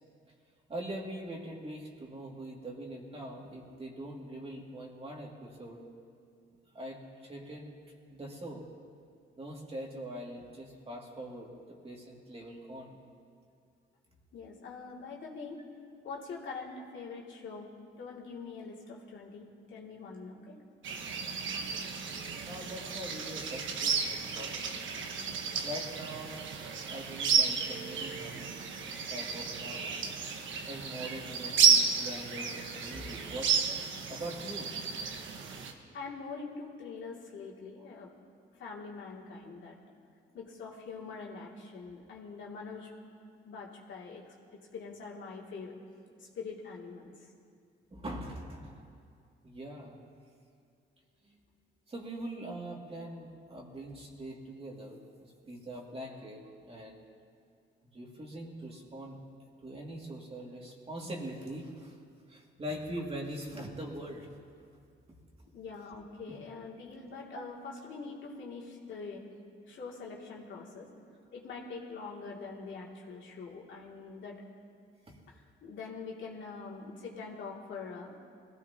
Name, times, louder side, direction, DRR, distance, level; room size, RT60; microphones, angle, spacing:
voice 1, 0.7-5.8 6.7-8.7 9.4-13.0 22.4-24.7 25.6-26.5 26.9-28.6 29.1-30.1 30.7-33.7 34.1-34.7 47.9-48.9 49.4-50.0 51.2-51.4 51.9-57.1 57.8-59.2 59.6-62.0 62.3-64.4 67.1-67.4 75.1-75.2, right 1 dB, 30° right, -1 dB, 2.4 m, -43 dB
voice 2, 14.3-15.6 16.0-20.6 35.9-38.1 38.5-39.8 40.3-42.9 43.4-45.8 46.2-47.3 65.5-69.2 69.7-70.9 71.3-74.4 75.3-78.2, left 4 dB, 70° left, -4 dB, 2.6 m, -44 dB
sound 1, 20.8-35.7, right 6 dB, 75° right, 1.3 m, -32 dB
21.0 x 15.5 x 2.9 m, 2.3 s
cardioid pair, 90°, 20 cm